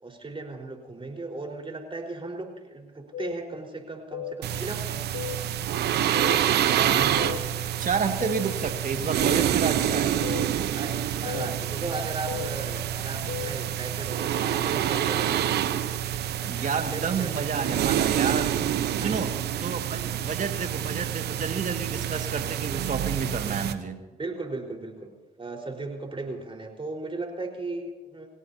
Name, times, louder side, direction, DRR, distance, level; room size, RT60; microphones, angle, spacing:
voice 1, 0.0-5.0 10.7-15.4 16.2-17.5 19.0-19.3 20.0-20.3 24.2-25.1 25.4-28.3, right 3 dB, 30° right, 2 dB, 4.5 m, -36 dB
sound 1, 3.1-3.3 4.1-4.3 5.1-5.3 6.1-6.4 7.2-7.4 8.2-8.4 9.2-9.4 10.2-10.4 11.3-11.5 12.3-12.5 13.3-13.5, left 13 dB, 85° left, 1.3 m, -34 dB
sound 2, 4.4-23.7, right 10 dB, 75° right, 0.9 m, -27 dB
voice 2, 6.6-7.4 7.8-10.2 16.4-18.6 19.0-19.3 19.6-24.0, right 5 dB, 50° right, 6 dB, 2.0 m, -30 dB
27.5 x 17.0 x 2.8 m, 1.2 s
supercardioid pair, 55°, 17 cm